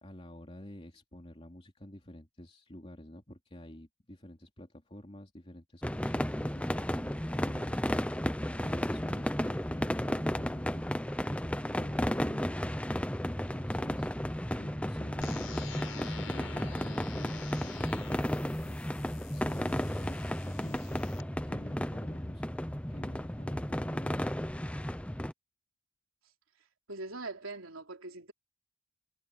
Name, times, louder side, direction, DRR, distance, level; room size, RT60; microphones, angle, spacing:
voice 1, 0.0-10.9 11.3-11.4 11.8-12.7 13.3-14.1 14.5-15.6 15.9-22.6 22.9-24.3, left 1 dB, 30° left, 3.2 m, -49 dB
sound 1, 5.8-25.3, equal, 5° left, 0.8 m, -33 dB
sound 2, 15.2-21.2, left 8 dB, 80° left, 6.7 m, -49 dB
voice 2, 26.9-28.3, right 2 dB, 90° right, 3.7 m, -42 dB
head